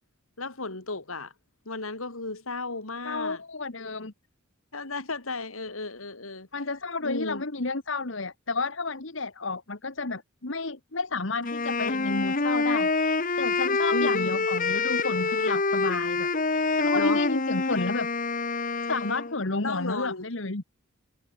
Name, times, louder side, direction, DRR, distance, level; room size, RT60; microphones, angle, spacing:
voice 1, 0.4-1.3 1.7-3.4 3.8-3.9 4.7-6.5 7.0-7.4 13.9-14.5 16.9-17.2 19.6-20.3, left 3 dB, 85° left, 4.0 m, -34 dB
voice 2, 3.0-4.1 6.5-18.1 18.9-20.6, left 3 dB, 65° left, 1.6 m, -31 dB
Wind instrument woodwind instrument, 11.4-19.4, left 3 dB, 40° left, 1.5 m, -26 dB
head